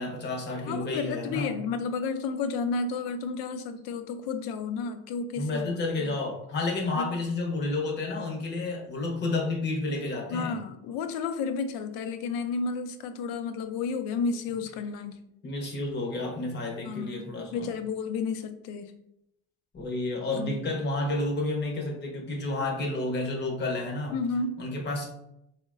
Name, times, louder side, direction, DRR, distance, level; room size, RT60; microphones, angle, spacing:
voice 1, 0.0-1.5 5.4-10.6 15.4-17.7 19.7-24.2 24.6-25.1, left 2 dB, 30° left, 1 dB, 0.7 m, -30 dB
voice 2, 0.6-5.6 6.0-6.1 6.9-7.1 10.3-15.2 16.8-18.9 20.3-20.7 24.1-24.6, left 4 dB, 75° left, 9 dB, 0.5 m, -32 dB
3.8 x 2.1 x 2.4 m, 0.80 s
cardioid pair, 140°, 36 cm